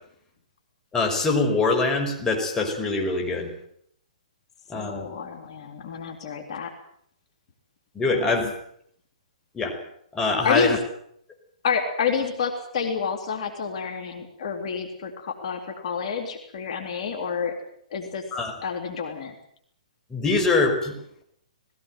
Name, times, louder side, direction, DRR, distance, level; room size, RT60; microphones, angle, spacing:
voice 1, 0.9-3.5 4.7-5.1 7.9-8.5 9.5-9.8 10.1-10.8 18.3-18.5 20.1-21.0, left 3 dB, 15° left, 1 dB, 5.6 m, -23 dB
voice 2, 4.7-6.7 8.1-8.5 10.4-10.8 11.6-17.5 17.9-18.2 18.6-19.3, left 6 dB, 55° left, 4 dB, 3.7 m, -29 dB
19.5 x 18.0 x 9.3 m, 0.68 s
hypercardioid pair, 125°, 4 cm